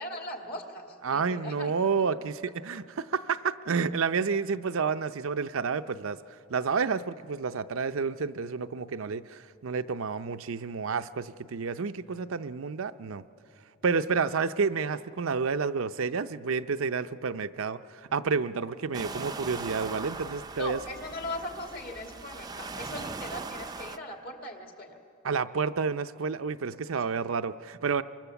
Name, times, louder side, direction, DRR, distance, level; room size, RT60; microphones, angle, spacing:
voice 1, 0.0-1.7 20.5-25.0 27.0-27.1, left 1 dB, 45° left, 2 dB, 2.4 m, -39 dB
voice 2, 1.0-6.2 6.5-13.2 13.8-17.8 18.1-20.8 25.2-28.0, right 5 dB, 75° right, 11 dB, 0.5 m, -30 dB
sound 1, 18.9-24.0, right 4 dB, 20° right, 0.5 m, -40 dB
25.0 x 24.0 x 7.0 m, 2.7 s
head